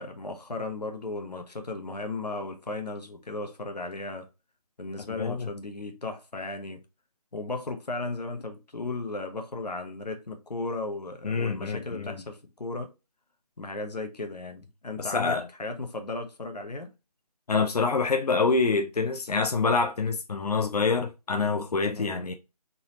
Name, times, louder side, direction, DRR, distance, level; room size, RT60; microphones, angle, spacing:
voice 1, 0.0-4.3 4.8-6.8 7.3-12.9 13.6-16.9 22.0-22.3, left 2 dB, 90° left, 1.0 m, -35 dB
voice 2, 5.1-5.5 11.2-12.2 15.0-15.5 17.5-22.3, left 4 dB, 75° left, 0.6 m, -26 dB
3.9 x 2.8 x 3.0 m
figure-of-eight pair, 165°, 20 cm